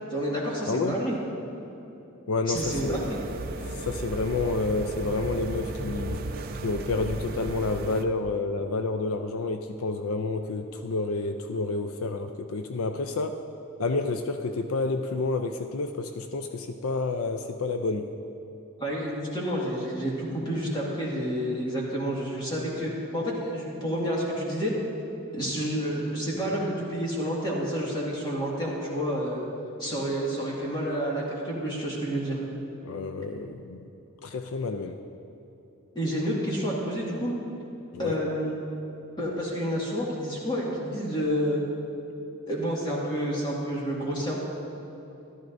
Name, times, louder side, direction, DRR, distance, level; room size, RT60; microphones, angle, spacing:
voice 1, 0.1-1.2 2.5-3.2 18.8-24.7 25.3-29.4 29.8-32.4 35.9-37.3 38.0-38.6 39.2-41.6 42.5-44.4, equal, 20° left, -5 dB, 1.9 m, -29 dB
voice 2, 0.7-1.0 2.3-3.0 3.6-6.3 6.6-13.4 13.8-18.1 32.8-33.9 34.2-35.0 37.9-38.2, left 3 dB, 75° left, 7 dB, 0.5 m, -29 dB
sound 1, 2.5-8.0, right 2 dB, 40° right, 0.5 m, -35 dB
14.0 x 13.0 x 2.6 m, 2.9 s
head